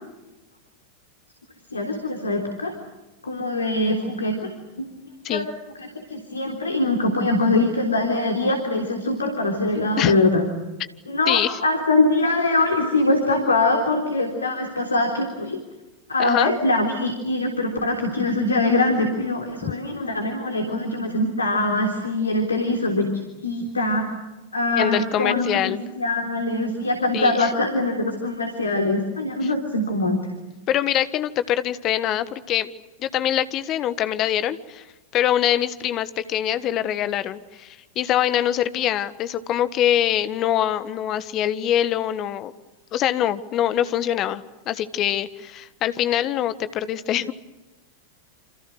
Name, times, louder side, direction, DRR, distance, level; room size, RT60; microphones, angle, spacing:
voice 1, 1.7-2.7 3.2-4.5 4.8-4.9 5.3-5.4 5.8-10.4 11.1-15.6 16.1-23.1 23.4-24.1 24.5-30.2, left 2 dB, 75° left, 4 dB, 3.5 m, -23 dB
voice 2, 11.3-11.6 16.2-16.5 19.6-19.7 24.8-25.8 27.1-27.5 29.4-29.5 30.7-32.7 33.0-34.8 35.1-42.5 42.9-47.3, left 11 dB, 35° left, 13 dB, 1.5 m, -24 dB
29.0 x 27.5 x 6.5 m, 1.1 s
figure-of-eight pair, 90°, 0 cm